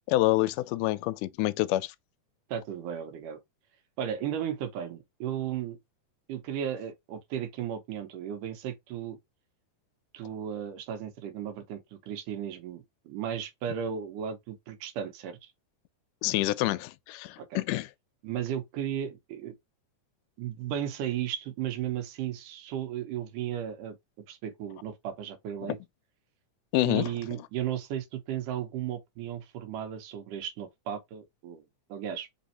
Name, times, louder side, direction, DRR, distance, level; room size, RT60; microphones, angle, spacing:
voice 1, 0.1-1.9 16.2-17.9 25.6-25.8 26.7-27.1, left 17 dB, 85° left, 2.1 m, -27 dB
voice 2, 2.5-3.4 4.0-5.8 6.3-9.2 10.1-15.5 17.4-17.6 18.2-19.5 20.4-24.0 24.3-25.8 26.8-31.6 31.9-32.3, right 9 dB, 85° right, 2.4 m, -35 dB
5.1 x 3.1 x 2.8 m
omnidirectional pair, 3.7 m